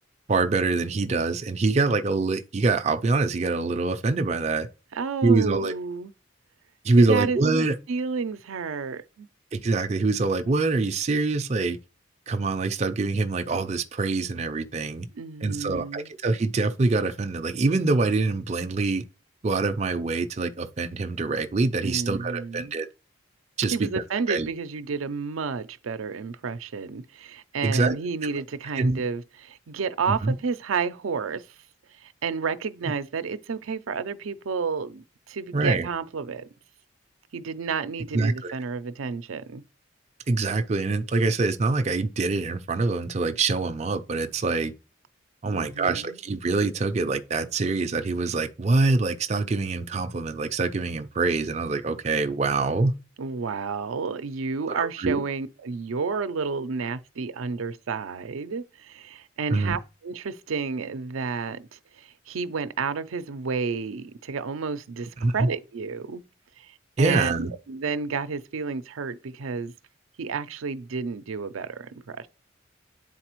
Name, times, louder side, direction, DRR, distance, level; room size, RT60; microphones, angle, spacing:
voice 1, 0.3-4.7 5.2-5.7 6.8-7.7 9.5-11.8 12.3-15.1 15.4-19.0 19.4-22.9 23.6-23.9 24.3-24.5 27.6-27.9 28.8-29.0 30.1-30.4 35.5-35.9 38.1-38.5 40.3-44.7 45.4-52.9 54.7-55.2 59.5-59.8 65.2-65.5 67.0-67.5, right 3 dB, 35° right, 0.4 m, -24 dB
voice 2, 4.9-6.1 7.0-7.4 7.9-9.3 15.1-16.1 21.8-22.7 23.7-31.4 32.0-36.5 37.3-39.6 45.4-46.2 53.2-66.2 66.6-66.7 67.0-69.7 70.2-72.3, right 5 dB, 90° right, 0.5 m, -31 dB
9.7 x 4.0 x 3.0 m
head